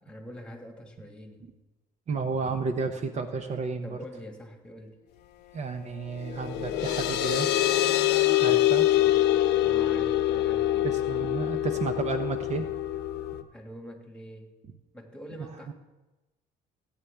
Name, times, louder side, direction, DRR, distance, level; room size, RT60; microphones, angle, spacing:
voice 1, 0.0-1.5 3.8-5.0 9.5-10.9 13.5-14.5 14.9-15.7, equal, 5° left, 2 dB, 1.7 m, -44 dB
voice 2, 2.1-4.0 5.5-7.5 8.4-8.9 10.8-12.7 15.7-15.8, right 4 dB, 45° right, 8 dB, 0.7 m, -32 dB
Bowed string instrument, 5.1-8.3, left 13 dB, 50° left, 0.5 m, -41 dB
sound 1, 6.3-13.4, left 13 dB, 80° left, 0.8 m, -25 dB
15.0 x 8.5 x 3.4 m, 1.1 s
cardioid pair, 110°, 17 cm